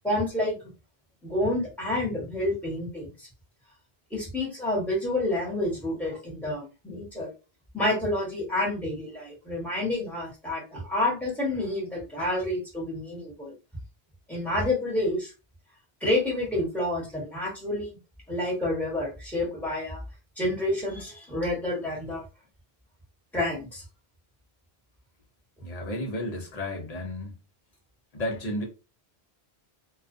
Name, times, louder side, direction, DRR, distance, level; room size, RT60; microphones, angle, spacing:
voice 1, 0.0-0.6 1.2-3.3 4.1-7.3 7.7-13.5 14.3-15.3 16.0-18.0 18.3-20.0 20.4-22.2 23.3-23.8, left 1 dB, ahead, 1.0 m, -29 dB
voice 2, 25.6-27.3 28.1-28.6, left 1 dB, 45° left, 0.7 m, -32 dB
2.3 x 2.2 x 2.5 m
omnidirectional pair, 1.1 m